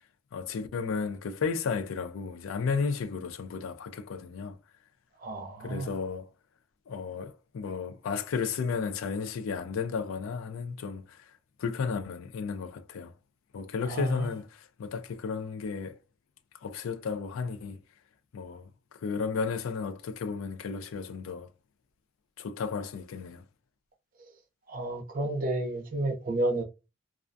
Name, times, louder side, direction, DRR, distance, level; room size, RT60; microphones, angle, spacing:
voice 1, 0.3-4.6 5.6-6.3 6.9-11.3 11.6-13.1 13.5-16.0 16.6-17.8 18.3-18.7 18.9-21.5 22.4-23.4, left 5 dB, 75° left, 0.4 m, -33 dB
voice 2, 5.2-5.9 13.9-14.1 24.7-26.6, right 2 dB, 40° right, 0.5 m, -31 dB
2.3 x 2.2 x 2.5 m
head